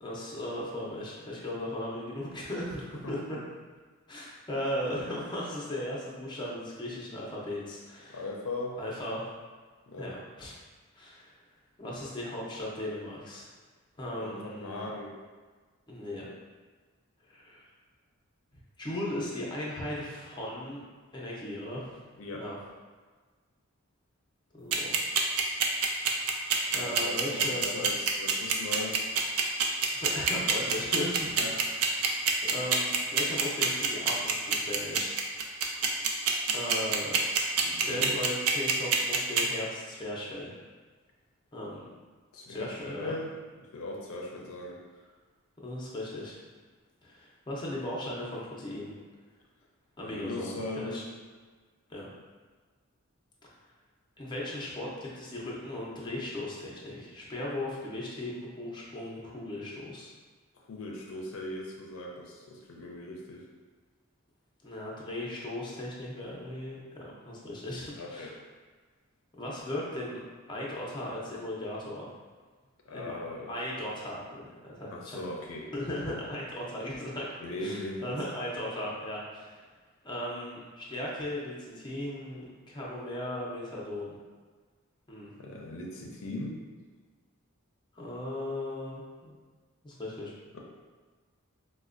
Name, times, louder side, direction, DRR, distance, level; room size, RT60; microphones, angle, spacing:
voice 1, 0.0-3.4 4.1-8.2 8.8-9.3 10.0-10.5 10.9-11.3 11.8-13.5 14.0-14.9 15.9-16.3 17.2-17.6 18.8-20.8 21.1-22.0 22.4-22.6 24.5-25.0 26.7-27.9 29.9-31.4 31.7-31.9 32.4-35.2 36.5-37.2 37.9-40.6 41.5-42.0 42.5-43.1 45.6-46.3 47.0-48.9 50.0-51.0 51.9-52.1 54.2-60.1 64.6-68.4 69.3-70.2 70.5-72.1 72.9-73.2 73.5-75.2 75.7-77.3 77.6-79.6 80.0-84.2 85.1-85.3 87.9-89.4 89.8-90.3, left 1 dB, 20° left, -5 dB, 0.5 m, -37 dB
voice 2, 3.0-3.4 8.1-8.8 9.9-10.1 14.2-15.1 22.2-22.4 26.7-29.0 31.2-31.6 37.6-38.2 42.3-43.3 43.7-44.8 50.0-51.0 60.7-63.4 67.9-68.3 72.9-73.5 74.9-75.7 77.4-78.2 85.4-86.6 90.5-90.6, left 2 dB, 70° left, -1 dB, 0.5 m, -39 dB
sound 1, 24.7-39.4, right 7 dB, 90° right, 0.4 m, -25 dB
4.1 x 2.1 x 2.4 m, 1.4 s
head